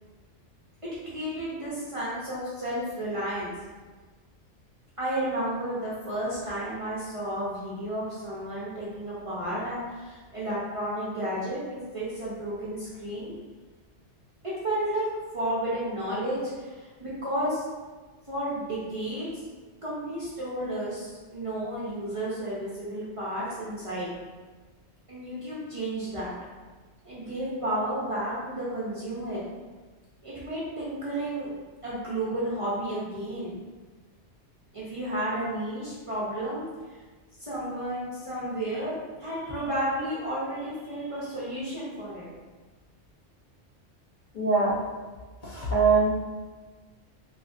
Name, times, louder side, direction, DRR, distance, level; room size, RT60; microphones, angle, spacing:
voice 1, 1.0-3.5 5.0-13.3 14.6-15.1 15.3-17.6 18.3-19.3 19.8-24.1 25.1-26.3 27.0-29.4 30.2-31.5 31.8-33.5 34.7-36.6 37.4-42.3, right 1 dB, 35° right, -9 dB, 0.6 m, -32 dB
voice 2, 44.3-44.8 45.4-46.1, right 4 dB, 55° left, -7 dB, 0.6 m, -22 dB
3.1 x 2.7 x 2.4 m, 1.3 s
omnidirectional pair, 1.2 m